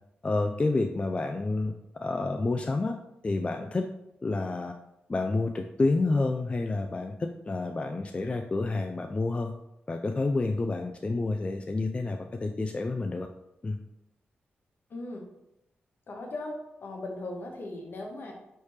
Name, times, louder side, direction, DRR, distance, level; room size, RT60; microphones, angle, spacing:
voice 1, 0.2-1.7 2.0-2.9 3.2-3.8 4.2-4.7 5.1-7.1 7.5-9.5 9.9-13.3 13.6-13.8, left 3 dB, 30° left, 4 dB, 0.3 m, -29 dB
voice 2, 14.9-15.2 16.1-16.5 16.8-18.3, left 2 dB, 60° left, 1 dB, 1.0 m, -38 dB
4.2 x 3.3 x 3.1 m, 0.86 s
cardioid pair, 60°, 4 cm